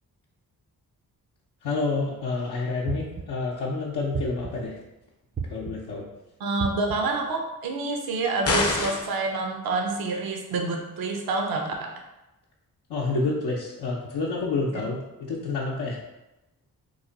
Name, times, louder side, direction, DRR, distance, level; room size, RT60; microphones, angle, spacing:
voice 1, 1.6-4.7 5.5-6.0 12.9-16.0, left 3 dB, 80° left, -4 dB, 0.6 m, -28 dB
sound 1, 2.9-3.5 4.1-4.8 5.4-6.0 6.6-7.2, right 6 dB, 25° right, 0.3 m, -34 dB
voice 2, 6.4-12.0 14.7-14.9, right 3 dB, 70° right, 3 dB, 0.6 m, -28 dB
sound 2, 8.4-9.2, left 3 dB, 40° left, 0.6 m, -25 dB
3.0 x 2.2 x 3.8 m, 0.97 s
cardioid pair, 55°, 38 cm